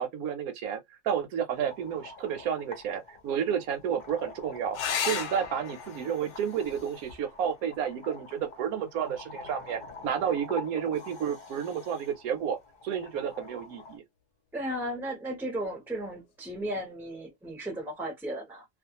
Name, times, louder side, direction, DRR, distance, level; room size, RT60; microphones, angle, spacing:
voice 1, 0.0-12.6 12.8-14.0, right 8 dB, 75° right, 1.0 m, -31 dB
sound 1, 1.5-14.0, left 3 dB, 45° left, 0.7 m, -46 dB
sound 2, 4.7-9.8 11.7-12.3 15.7-15.9 16.2-16.3, left 8 dB, 85° left, 1.1 m, -38 dB
voice 2, 14.5-18.6, right 1 dB, ahead, 0.6 m, -35 dB
2.4 x 2.4 x 2.7 m
omnidirectional pair, 1.6 m